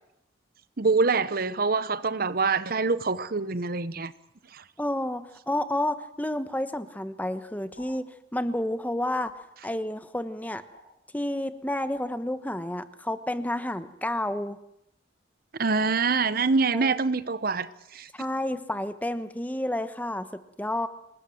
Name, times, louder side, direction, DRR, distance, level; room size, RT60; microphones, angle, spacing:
voice 1, 0.8-4.1 4.5-4.6 15.6-18.1, right 4 dB, 50° right, 0.9 m, -25 dB
voice 2, 4.8-8.0 8.3-9.3 9.6-10.6 11.1-14.6 16.7-17.0 18.1-20.9, left 1 dB, 10° left, 1.2 m, -30 dB
sound 1, 7.7-7.9 9.2-9.4 10.7-10.8 11.9-12.1, left 1 dB, 65° left, 8.0 m, -49 dB
27.0 x 20.0 x 7.8 m
head